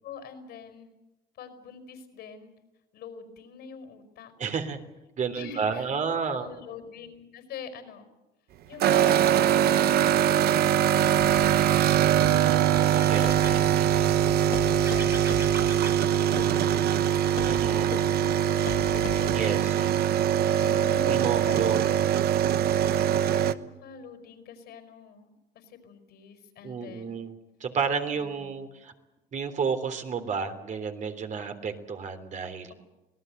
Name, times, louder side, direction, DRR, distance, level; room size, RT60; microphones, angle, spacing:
voice 1, 0.0-0.9 1.3-2.5 2.9-4.3 5.3-5.9 6.2-8.1 8.6-13.3 13.9-19.6 20.6-22.0 22.3-27.2 28.1-28.6, left 6 dB, 75° left, 9 dB, 5.2 m, -46 dB
voice 2, 4.4-4.8 5.2-6.5 12.2-14.1 17.4-18.0 19.3-20.2 21.0-22.2 26.6-27.3 27.6-28.9 29.3-32.7, right 6 dB, 45° right, 7 dB, 3.4 m, -32 dB
sound 1, 8.8-23.5, right 10 dB, 70° right, 1.1 m, -22 dB
sound 2, 11.2-19.4, left 8 dB, 55° left, 2.3 m, -41 dB
sound 3, 12.9-17.9, right 2 dB, 15° right, 1.8 m, -44 dB
26.5 x 18.5 x 8.0 m, 1.0 s
cardioid pair, 110°, 17 cm